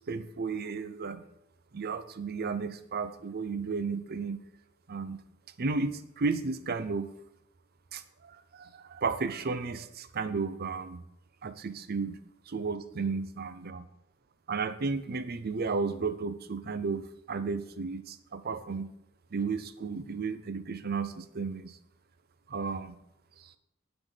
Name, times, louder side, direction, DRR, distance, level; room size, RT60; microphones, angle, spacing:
voice 1, 0.1-1.2 1.7-4.4 4.9-5.2 5.6-7.1 7.9-11.0 11.4-13.9 14.5-18.9 19.3-21.8 22.5-23.0 23.4-23.5, right 4 dB, 45° right, 12 dB, 0.6 m, -33 dB
8.9 x 6.1 x 5.1 m, 0.83 s
head